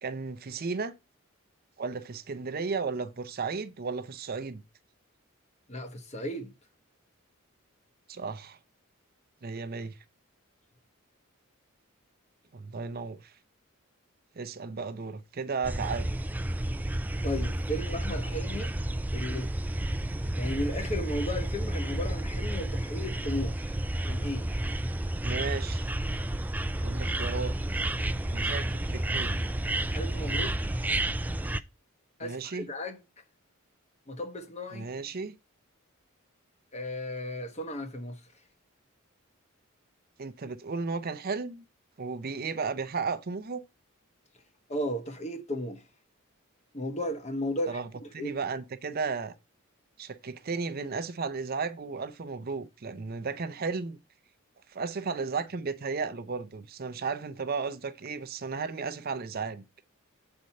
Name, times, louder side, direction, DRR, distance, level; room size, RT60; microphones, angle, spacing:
voice 1, 0.0-0.9 1.8-4.6 8.1-8.6 9.4-10.0 12.5-13.3 14.3-16.1 25.2-25.9 26.8-27.9 28.3-29.4 32.2-32.7 34.7-35.3 40.2-41.6 42.0-43.6 47.7-47.9 48.1-49.4 50.0-54.0 54.7-59.6, right 4 dB, 45° right, 0.6 m, -34 dB
voice 2, 5.7-6.5 17.2-18.8 19.1-19.5 20.4-24.5 29.9-30.8 32.2-33.0 34.1-34.9 36.7-38.2 44.7-45.8 46.7-48.4, left 1 dB, 30° left, 1.1 m, -35 dB
sound 1, 15.6-31.6, right 1 dB, 10° right, 0.3 m, -31 dB
7.7 x 4.4 x 5.3 m
head